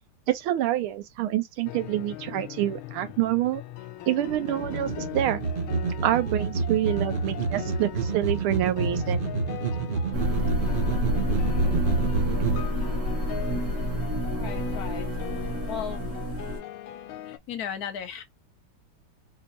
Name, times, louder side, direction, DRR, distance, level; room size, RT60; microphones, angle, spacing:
voice 1, 0.3-3.6 4.1-5.4 6.0-9.3, right 13 dB, 85° right, 1.6 m, -27 dB
sound 1, 1.7-17.4, left 13 dB, 85° left, 1.4 m, -40 dB
sound 2, 4.2-12.6, right 4 dB, 70° right, 0.5 m, -28 dB
sound 3, 10.1-16.6, left 1 dB, 40° right, 1.6 m, -28 dB
voice 2, 14.4-15.1 15.7-16.0 17.2-18.2, left 8 dB, 65° left, 1.0 m, -35 dB
4.0 x 2.7 x 2.6 m
omnidirectional pair, 2.3 m